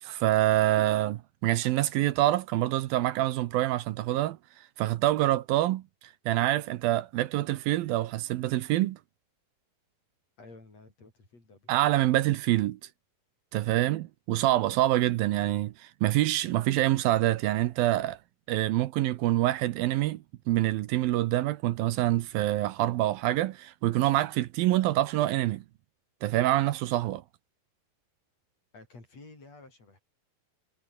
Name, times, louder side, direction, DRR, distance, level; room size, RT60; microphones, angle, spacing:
voice 1, 0.0-9.0 11.7-12.8 13.5-18.2 18.5-25.6 26.2-27.2, right 15 dB, 75° right, 2.5 m, -26 dB
voice 2, 10.4-11.7 28.7-30.0, left 3 dB, 40° left, 9.0 m, -51 dB
omnidirectional pair, 4.5 m